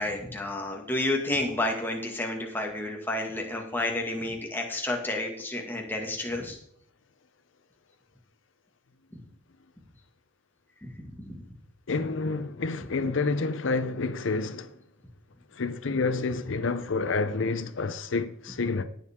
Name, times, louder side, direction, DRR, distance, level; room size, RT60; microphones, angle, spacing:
voice 1, 0.0-6.6 9.1-9.2 10.8-10.9 11.2-11.4, left 2 dB, 10° left, 1.9 m, -30 dB
voice 2, 11.9-14.8 15.5-18.8, left 3 dB, 70° left, 0.6 m, -29 dB
18.0 x 7.2 x 3.6 m
head